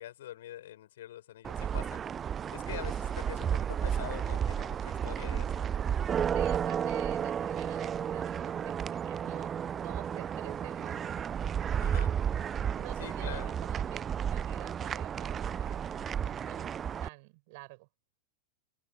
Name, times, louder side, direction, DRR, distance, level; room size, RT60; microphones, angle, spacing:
voice 1, 0.0-2.0 2.5-6.1 11.8-12.2 13.0-13.5, left 13 dB, 60° left, 7.2 m, -45 dB
sound 1, 1.4-17.1, right 8 dB, 25° right, 0.6 m, -32 dB
voice 2, 6.3-9.5 9.8-11.1 12.7-16.7 17.0-17.9, right 26 dB, 50° right, 6.7 m, -49 dB
figure-of-eight pair, 90°, 0 cm